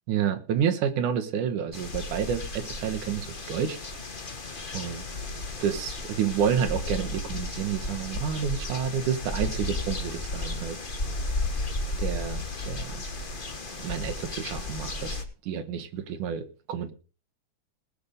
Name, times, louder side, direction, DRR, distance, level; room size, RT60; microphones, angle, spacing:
voice 1, 0.1-3.8 4.7-5.0 5.6-10.8 12.0-13.0 13.8-15.2 15.4-16.9, right 8 dB, 85° right, 7 dB, 2.8 m, -29 dB
sound 1, 1.7-15.2, left 2 dB, 65° left, 0.5 m, -34 dB
19.5 x 6.8 x 5.0 m, 0.36 s
omnidirectional pair, 3.5 m